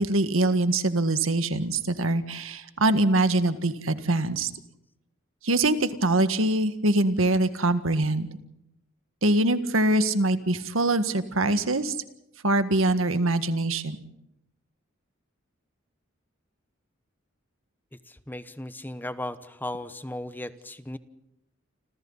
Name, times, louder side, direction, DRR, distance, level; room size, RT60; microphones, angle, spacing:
voice 1, 0.0-4.5 5.4-8.3 9.2-12.0 12.4-14.0, right 2 dB, 80° right, 10 dB, 1.7 m, -23 dB
voice 2, 18.1-21.0, left 1 dB, 10° left, 12 dB, 1.0 m, -36 dB
29.0 x 26.5 x 4.1 m, 0.81 s
head